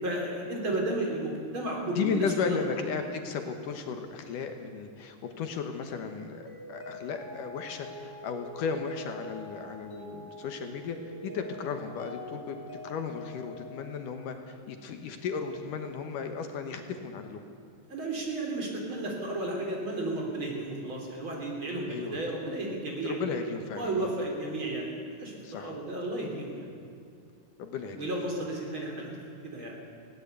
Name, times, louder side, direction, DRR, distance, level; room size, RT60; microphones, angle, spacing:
voice 1, 0.0-2.6 17.9-23.2 23.8-26.7 27.9-29.7, right 2 dB, 35° right, 0 dB, 4.0 m, -33 dB
voice 2, 1.8-11.0 11.2-12.6 12.8-17.4 21.9-22.2 23.0-24.1 25.4-25.7 27.6-28.1, left 5 dB, 70° left, 6 dB, 2.7 m, -35 dB
Mallet percussion, 6.5-14.6, left 1 dB, 5° right, 3.9 m, -45 dB
19.5 x 17.5 x 8.2 m, 2.5 s
omnidirectional pair, 4.0 m